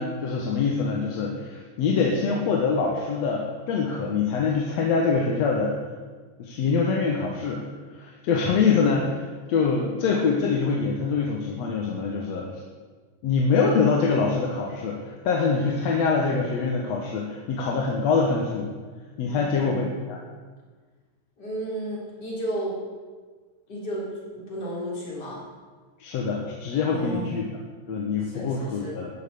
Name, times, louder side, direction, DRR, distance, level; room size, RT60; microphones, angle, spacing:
voice 1, 0.0-5.7 6.4-7.6 7.9-12.5 13.2-18.7 19.2-20.2 26.0-27.4 27.9-29.1, left 5 dB, 60° left, -1 dB, 2.3 m, -24 dB
voice 2, 19.3-20.0 21.4-22.8 23.7-25.4 26.9-27.4 28.2-29.0, right 1 dB, 30° left, -5 dB, 4.4 m, -33 dB
15.0 x 6.6 x 8.4 m, 1.4 s
omnidirectional pair, 3.6 m